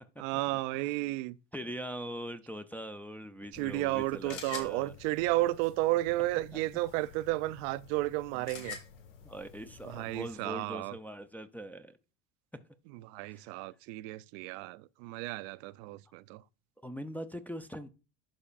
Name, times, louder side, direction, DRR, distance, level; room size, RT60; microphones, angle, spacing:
voice 1, 0.2-1.4 3.5-8.8 9.8-11.0 12.9-16.4, right 18 dB, 70° right, 0.5 m, -33 dB
voice 2, 1.5-5.0 9.2-12.0 12.5-12.6 13.2-13.6 16.8-17.9, equal, 5° left, 0.4 m, -42 dB
sound 1, 3.5-10.3, left 6 dB, 80° left, 1.8 m, -49 dB
11.5 x 4.3 x 2.4 m
supercardioid pair, 95°, 40 cm